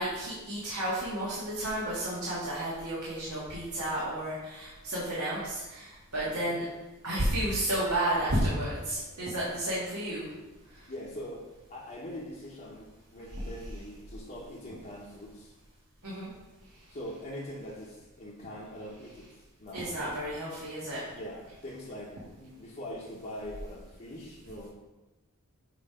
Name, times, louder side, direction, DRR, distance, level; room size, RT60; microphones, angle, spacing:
voice 1, 0.0-6.6 7.0-10.3 13.3-13.5 16.0-16.3 19.7-21.0, right 1 dB, 90° right, -8 dB, 1.7 m, -32 dB
voice 2, 6.2-6.6 10.9-15.5 16.9-19.3 19.6-19.9 21.1-24.7, equal, 40° left, -7 dB, 0.9 m, -42 dB
7.6 x 3.1 x 5.0 m, 1.1 s
head